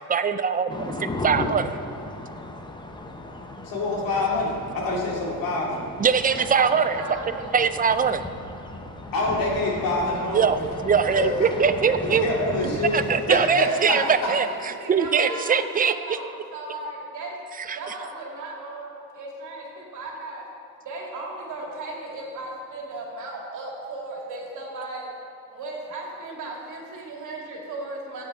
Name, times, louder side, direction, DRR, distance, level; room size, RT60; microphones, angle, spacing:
voice 1, 0.1-1.8 6.0-7.0 7.5-8.2 10.3-12.3 12.6-16.2 17.7-17.8, right 6 dB, 25° right, 11 dB, 0.4 m, -22 dB
sound 1, 0.7-13.5, left 2 dB, 15° left, 0.7 m, -36 dB
voice 2, 3.6-5.9 9.1-10.4 11.2-11.5 11.9-13.0 13.3-14.0 15.2-15.3, left 2 dB, 75° left, -3 dB, 2.7 m, -26 dB
voice 3, 6.3-7.5 13.5-17.4 17.7-20.5 20.8-25.1 25.5-28.2, right 2 dB, 60° right, -2 dB, 2.6 m, -36 dB
14.0 x 8.5 x 4.3 m, 2.6 s
cardioid pair, 145°, 34 cm